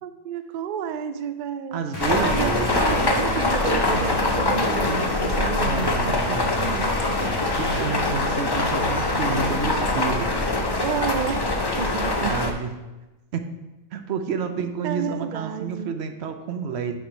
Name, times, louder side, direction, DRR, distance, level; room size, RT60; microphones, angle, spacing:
voice 1, 0.0-1.8 2.2-7.2 10.8-12.4 14.6-16.0, right 8 dB, 90° right, 10 dB, 0.4 m, -31 dB
voice 2, 1.7-2.8 5.6-6.4 7.6-10.3 12.2-12.7 13.3-13.5 13.9-17.0, right 6 dB, 60° right, 8 dB, 0.9 m, -30 dB
sound 1, 1.9-10.4, equal, 15° left, 1.4 m, -32 dB
sound 2, 2.0-12.5, left 2 dB, 30° left, 0.4 m, -24 dB
6.5 x 4.8 x 5.6 m, 1.1 s
omnidirectional pair, 1.4 m